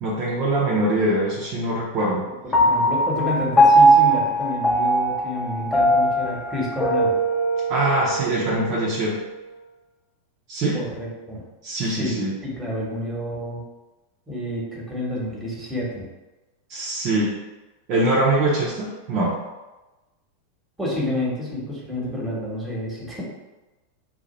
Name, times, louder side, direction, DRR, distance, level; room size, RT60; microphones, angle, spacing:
voice 1, 0.0-2.2 7.7-9.1 10.5-10.8 11.6-12.3 16.7-17.3 17.9-19.3, right 1 dB, 40° right, -5 dB, 0.7 m, -23 dB
voice 2, 2.4-7.1 10.7-11.4 11.8-12.2 12.4-13.6 14.3-16.1 20.8-23.2, left 1 dB, 5° right, -5 dB, 1.2 m, -29 dB
Piano, 2.5-9.2, right 1 dB, 15° left, 0.5 m, -20 dB
2.8 x 2.4 x 4.1 m, 1.1 s
figure-of-eight pair, 90°, 0 cm